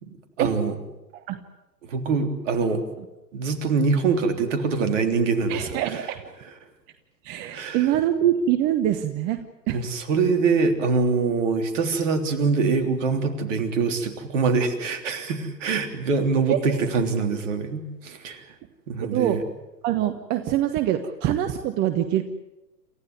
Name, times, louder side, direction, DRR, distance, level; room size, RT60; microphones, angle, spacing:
voice 1, 0.0-0.8 1.9-2.8 3.3-5.8 7.5-7.8 9.7-18.4 18.9-19.4, right 4 dB, 45° right, 7 dB, 3.4 m, -24 dB
voice 2, 5.5-6.3 7.2-9.8 16.5-16.7 19.0-19.4 19.8-22.2, right 11 dB, 20° right, 9 dB, 1.0 m, -24 dB
28.5 x 15.0 x 9.4 m, 1.0 s
figure-of-eight pair, 120°, 50 cm